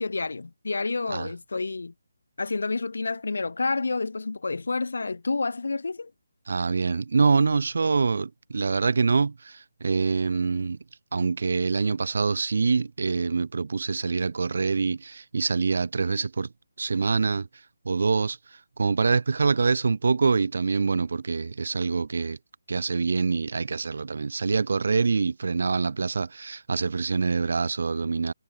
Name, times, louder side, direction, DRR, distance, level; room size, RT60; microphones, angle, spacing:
voice 1, 0.0-1.9 2.4-6.1, left 3 dB, 70° left, 0.6 m, -29 dB
voice 2, 6.5-10.8 11.1-16.5 16.8-17.5 17.8-18.4 18.8-22.4 22.7-28.3, right 4 dB, 50° right, 0.7 m, -25 dB
hypercardioid pair, 180°, 0 cm